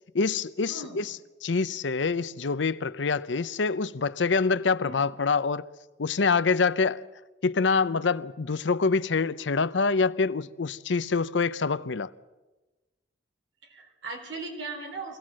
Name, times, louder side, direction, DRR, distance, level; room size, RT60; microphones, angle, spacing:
voice 1, 0.1-5.6 6.0-7.1 7.4-12.1, left 4 dB, 75° left, 0.7 m, -26 dB
voice 2, 0.7-1.1 4.8-5.1 13.7-15.2, right 3 dB, 85° right, 3.9 m, -38 dB
24.0 x 17.5 x 7.5 m
head